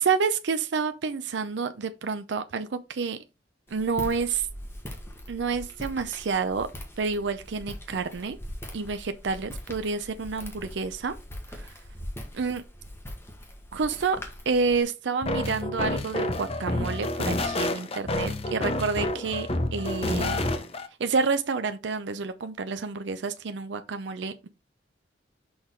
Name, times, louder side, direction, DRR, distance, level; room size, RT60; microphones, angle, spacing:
voice 1, 0.0-3.2 3.7-4.5 5.3-6.7 7.0-8.4 8.7-11.1 11.5-11.7 12.3-12.6 13.7-14.2 14.5-20.4 21.0-24.5, right 5 dB, 75° right, 0.5 m, -29 dB
Walk footsteps, 3.7-14.8, equal, 15° left, 1.3 m, -41 dB
sound 1, 15.2-20.9, left 1 dB, 35° left, 0.7 m, -29 dB
6.2 x 3.7 x 4.5 m
head